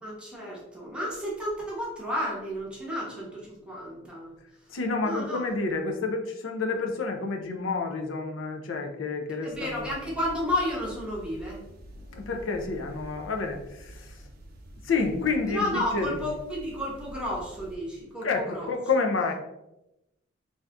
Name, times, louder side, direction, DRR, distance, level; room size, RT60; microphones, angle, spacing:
voice 1, 0.0-4.3 5.0-5.4 9.3-11.6 15.5-18.7, left 1 dB, 5° right, -4 dB, 0.7 m, -32 dB
voice 2, 4.7-9.9 12.1-14.1 14.8-16.2 18.2-19.3, left 4 dB, 80° left, 3 dB, 0.5 m, -29 dB
sound 1, 9.5-17.8, right 1 dB, 50° right, 0.5 m, -46 dB
2.7 x 2.3 x 3.4 m, 0.90 s
head